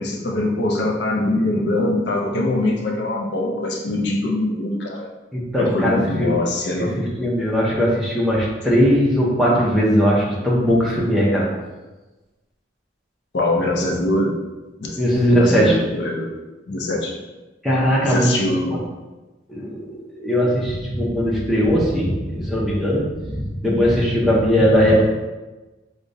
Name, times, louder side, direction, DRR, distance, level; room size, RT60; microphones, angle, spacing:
voice 1, 0.0-5.1 5.6-7.0 13.3-14.4 14.8-15.0 15.3-16.3 16.7-17.2 18.0-18.8, left 1 dB, 60° left, 0 dB, 0.5 m, -23 dB
voice 2, 5.3-6.4 6.8-6.9 7.2-11.5 15.0-15.8 17.6-18.5 19.5-19.9 20.1-25.0, equal, ahead, -6 dB, 0.5 m, -19 dB
4.9 x 2.1 x 2.6 m, 1.1 s
head